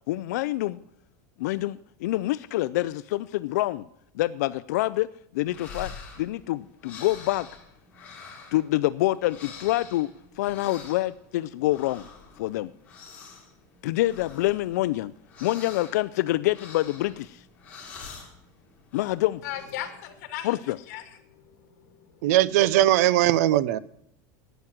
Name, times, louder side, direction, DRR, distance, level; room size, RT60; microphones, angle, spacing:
voice 1, 0.1-0.8 1.4-3.9 4.1-5.1 5.3-5.9 6.2-7.5 8.5-10.1 10.4-12.0 12.4-12.7 13.8-15.1 15.4-17.4 18.9-19.4 20.4-20.8, left 17 dB, 70° left, 14 dB, 0.4 m, -26 dB
sound 1, 5.3-20.1, left 5 dB, 15° left, 3.4 m, -47 dB
voice 2, 19.4-22.3, left 11 dB, 55° left, 6 dB, 2.2 m, -39 dB
voice 3, 22.2-23.8, right 14 dB, 60° right, 20 dB, 0.6 m, -20 dB
12.0 x 9.3 x 7.3 m, 0.74 s
supercardioid pair, 180°, 9 cm